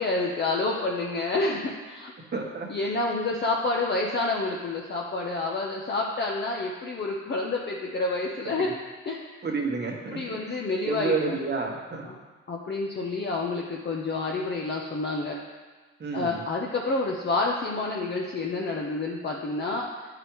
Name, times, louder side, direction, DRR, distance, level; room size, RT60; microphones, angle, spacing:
voice 1, 0.0-2.1 2.7-8.7 9.1-9.2 10.1-11.4 12.0-12.2 12.5-15.4 16.1-19.9, left 3 dB, 35° left, -1 dB, 0.7 m, -28 dB
voice 2, 2.3-2.7 9.4-10.6 10.8-12.0 16.0-16.4, right 4 dB, 35° right, 1 dB, 1.2 m, -30 dB
8.7 x 4.8 x 3.1 m, 1.3 s
cardioid pair, 90°, 30 cm